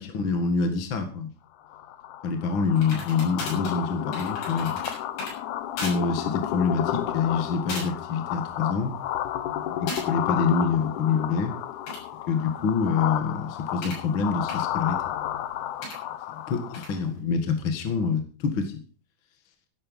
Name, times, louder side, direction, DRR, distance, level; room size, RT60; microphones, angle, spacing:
voice 1, 0.0-1.3 2.2-4.8 5.8-8.9 9.7-11.5 12.3-15.0 16.5-18.8, left 5 dB, 45° left, 6 dB, 1.8 m, -26 dB
sound 1, 1.7-17.0, left 11 dB, 70° left, 2.0 m, -32 dB
sound 2, 2.8-5.3 5.8-6.0 6.4-6.6 7.2-7.4 7.7-8.1 8.5-9.0 9.9-10.1 11.6-14.1 14.5-14.6 15.8-16.0 16.7-16.9, left 2 dB, 90° left, 8.8 m, -37 dB
13.5 x 11.0 x 5.6 m, 0.39 s
omnidirectional pair, 4.6 m